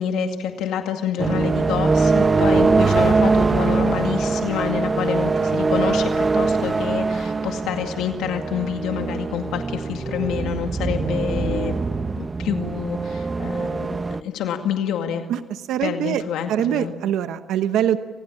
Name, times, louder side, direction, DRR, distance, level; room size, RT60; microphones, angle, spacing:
voice 1, 0.0-11.8 12.2-15.3 15.8-16.9, left 8 dB, 85° left, 5 dB, 2.1 m, -27 dB
sound 1, 1.2-14.2, right 4 dB, 30° right, 1.0 m, -22 dB
voice 2, 15.3-16.2 16.5-18.0, right 10 dB, 85° right, 10 dB, 1.0 m, -23 dB
30.0 x 25.0 x 7.4 m, 1.2 s
cardioid pair, 90°, 0 cm